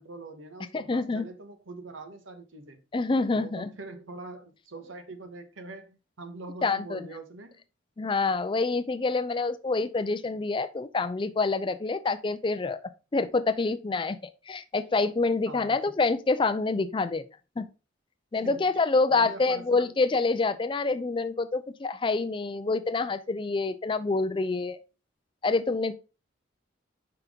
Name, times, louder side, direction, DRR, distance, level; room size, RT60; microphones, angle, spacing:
voice 1, 0.0-2.8 3.3-7.6 15.5-15.8 18.4-18.6 19.1-20.0, right 2 dB, 90° right, 1.1 m, -43 dB
voice 2, 0.7-1.2 2.9-3.7 6.6-7.0 8.0-12.8 13.1-14.2 14.5-17.2 17.6-17.7 18.3-24.8 25.4-25.9, left 3 dB, 25° left, 0.4 m, -27 dB
5.7 x 5.3 x 3.6 m
head